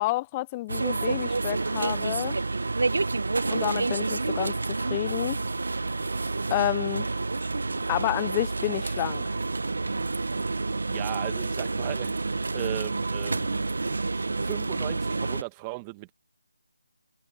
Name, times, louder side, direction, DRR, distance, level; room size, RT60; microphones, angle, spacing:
voice 1, 0.0-2.4 3.5-4.6 4.9-5.4 6.5-7.1 7.9-9.2, left 19 dB, 15° left, 0.3 m, -29 dB
sound 1, 0.7-15.4, right 3 dB, 70° right, 1.0 m, -29 dB
voice 2, 10.9-13.6 14.4-16.1, right 24 dB, 15° right, 1.4 m, -37 dB
figure-of-eight pair, 165°, 0 cm